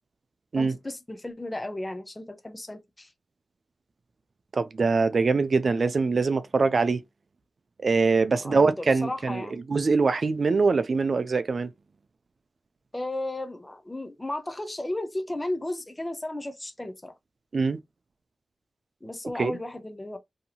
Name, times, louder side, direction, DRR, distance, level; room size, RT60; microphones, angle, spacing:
voice 1, 0.6-3.1 8.3-9.6 12.9-17.1 19.0-20.2, left 1 dB, 15° left, 0.5 m, -34 dB
voice 2, 4.5-7.0 7.8-11.7 17.5-17.8 19.4-19.6, right 4 dB, 50° right, 0.4 m, -23 dB
2.7 x 2.7 x 2.4 m
wide cardioid pair, 140°, 0 cm